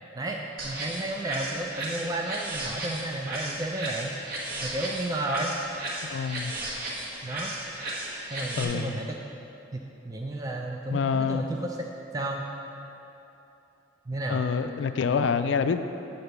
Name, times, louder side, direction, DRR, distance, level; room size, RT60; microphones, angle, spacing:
voice 1, 0.1-4.1 4.6-5.5 7.2-7.5 8.3-9.2 9.7-11.9 12.1-12.4 14.1-14.4, right 2 dB, 20° right, 1 dB, 0.3 m, -32 dB
sound 1, 0.6-8.6, right 1 dB, 50° right, 1.3 m, -35 dB
voice 2, 6.1-6.5 8.6-9.0 10.9-11.5 14.3-15.8, left 6 dB, 65° left, 10 dB, 0.3 m, -27 dB
8.6 x 3.9 x 6.7 m, 2.9 s
head